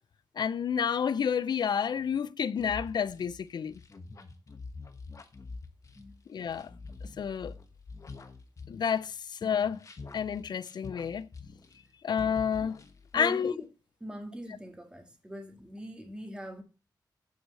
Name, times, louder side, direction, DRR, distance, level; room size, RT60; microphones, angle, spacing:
voice 1, 0.4-3.7 6.3-6.7 7.2-7.5 8.7-9.8 10.1-11.3 12.0-12.8 13.1-13.5, left 7 dB, 75° left, 0.5 m, -29 dB
sound 1, 2.6-9.1 9.4-11.9 12.2-13.2, left 3 dB, 45° left, 1.2 m, -46 dB
voice 2, 13.1-13.7 14.0-16.6, right 1 dB, 10° right, 1.8 m, -42 dB
9.4 x 4.8 x 6.6 m
wide cardioid pair, 130°, 8 cm